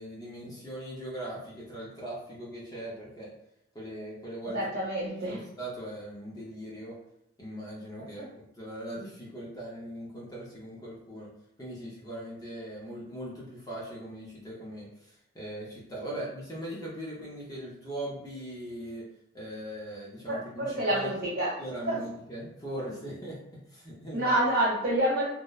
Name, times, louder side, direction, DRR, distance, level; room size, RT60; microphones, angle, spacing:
voice 1, 0.0-3.3 3.7-4.8 5.3-7.0 7.4-11.3 11.6-19.0 19.3-21.1 21.6-23.4 23.7-24.4, right 1 dB, 20° left, -5 dB, 0.5 m, -40 dB
voice 2, 4.5-5.4 8.0-8.3 16.0-16.2 20.3-21.6 21.9-22.0 24.1-25.3, right 1 dB, 60° right, -9 dB, 1.0 m, -28 dB
2.8 x 2.0 x 2.2 m, 0.79 s
head